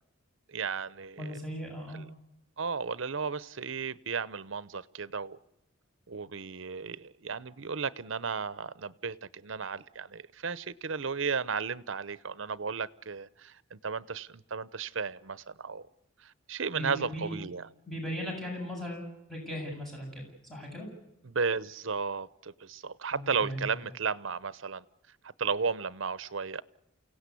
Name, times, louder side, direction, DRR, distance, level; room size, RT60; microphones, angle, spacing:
voice 1, 0.5-1.4 1.9-2.1 2.6-5.4 6.1-15.9 16.2-17.7 21.2-24.8 25.4-26.6, right 5 dB, 70° right, 0.8 m, -34 dB
voice 2, 1.2-2.0 16.7-17.4 17.8-20.9 23.1-23.6, equal, ahead, 7.9 m, -38 dB
29.0 x 17.0 x 8.4 m
head